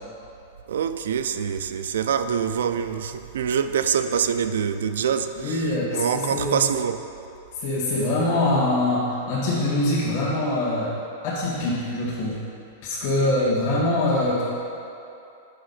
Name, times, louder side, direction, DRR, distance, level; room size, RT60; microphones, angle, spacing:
voice 1, 0.7-5.7 5.9-7.0 13.2-13.6, right 7 dB, 90° right, 9 dB, 0.4 m, -25 dB
voice 2, 5.4-6.6 7.6-10.9 11.2-12.4 12.8-14.4, left 2 dB, 55° left, -7 dB, 1.8 m, -24 dB
6.6 x 5.2 x 5.6 m, 2.7 s
supercardioid pair, 145°, 0 cm